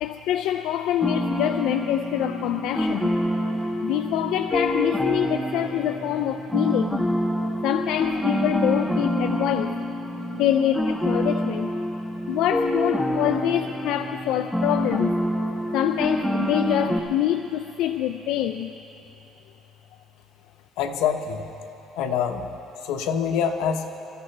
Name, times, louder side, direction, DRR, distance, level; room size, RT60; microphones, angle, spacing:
voice 1, 0.0-3.1 3.5-7.0 7.6-9.7 10.3-11.7 12.3-15.2 15.7-18.7, left 12 dB, 70° left, 8 dB, 0.3 m, -25 dB
sound 1, 1.0-17.0, equal, 5° left, 0.6 m, -26 dB
voice 2, 20.8-21.5 22.0-22.5 22.8-23.9, left 7 dB, 90° left, 5 dB, 1.0 m, -25 dB
24.0 x 14.0 x 3.3 m, 3.0 s
cardioid pair, 175°, 0 cm